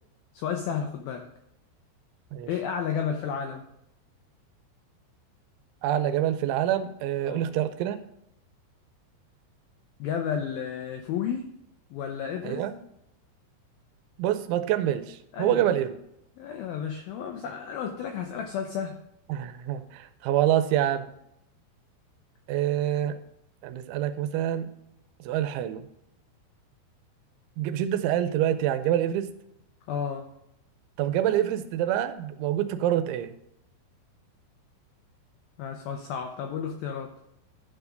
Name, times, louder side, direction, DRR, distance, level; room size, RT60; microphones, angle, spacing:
voice 1, 0.3-1.3 2.5-3.7 7.3-7.4 10.0-11.5 11.9-12.6 15.3-15.7 16.4-19.0 29.9-30.3 35.6-37.1, left 7 dB, 90° left, 4 dB, 2.1 m, -32 dB
voice 2, 5.8-8.0 12.4-12.8 14.2-16.0 19.3-21.1 22.5-23.2 23.6-24.7 25.2-25.9 27.6-29.3 31.0-33.4, right 11 dB, 85° right, 11 dB, 3.1 m, -26 dB
11.5 x 4.9 x 5.2 m, 0.80 s
omnidirectional pair, 5.3 m